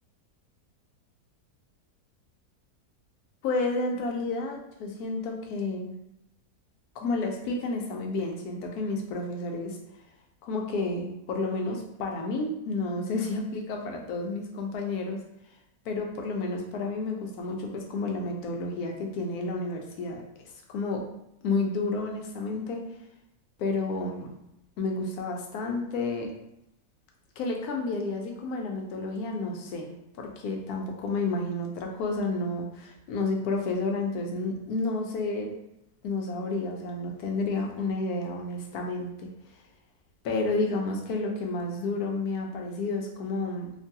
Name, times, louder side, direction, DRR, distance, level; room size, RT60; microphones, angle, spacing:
voice 1, 3.4-5.9 7.0-9.8 10.4-15.2 15.9-20.2 20.7-21.0 21.4-22.8 23.6-24.3 24.8-26.3 27.4-29.9 30.2-35.5 36.0-39.3 40.2-43.7, left 3 dB, 75° left, 2 dB, 1.1 m, -31 dB
3.0 x 2.2 x 2.7 m, 0.82 s
omnidirectional pair, 1.7 m